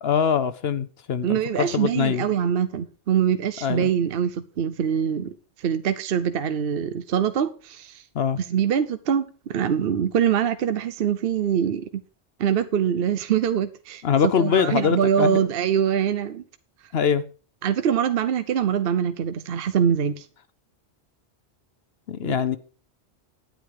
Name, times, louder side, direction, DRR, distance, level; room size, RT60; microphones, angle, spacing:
voice 1, 0.0-2.2 3.6-3.9 8.1-8.4 14.0-15.5 16.9-17.2 22.1-22.6, left 7 dB, 65° left, 0.9 m, -23 dB
voice 2, 1.2-5.3 5.6-8.0 8.3-11.9 12.4-14.0 14.4-16.4 17.6-20.3 22.2-22.4, right 8 dB, 60° right, 0.9 m, -24 dB
10.0 x 9.4 x 4.8 m
omnidirectional pair, 1.1 m